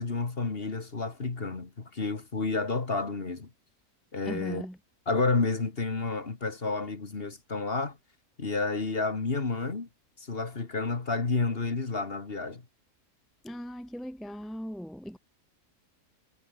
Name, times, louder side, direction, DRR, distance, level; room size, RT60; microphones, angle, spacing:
voice 1, 0.0-3.5 4.1-4.6 5.1-8.0 8.4-9.9 10.3-12.6, left 3 dB, 35° left, 2.1 m, -30 dB
voice 2, 4.2-4.8 13.4-15.2, equal, ahead, 1.2 m, -38 dB
omnidirectional pair, 1.7 m